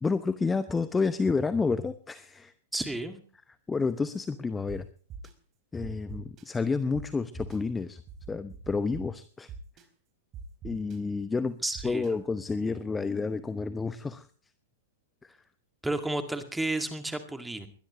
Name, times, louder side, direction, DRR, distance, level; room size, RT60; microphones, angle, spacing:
voice 1, 0.0-2.5 3.7-4.9 5.7-8.0 8.3-9.5 10.6-11.6 11.8-14.3 15.2-15.3, left 4 dB, 10° left, 14 dB, 0.9 m, -30 dB
voice 2, 2.7-3.2 11.6-12.1 15.8-17.7, right 2 dB, 5° right, 7 dB, 2.1 m, -32 dB
sound 1, 4.7-4.8 5.1-5.3 5.8-6.4 6.9-7.0 7.4-7.6 8.1-9.0 9.5-9.8 10.3-11.0 11.7-12.1, right 7 dB, 30° right, 3.9 m, -42 dB
21.5 x 20.5 x 3.1 m, 0.43 s
figure-of-eight pair, 100°, 0 cm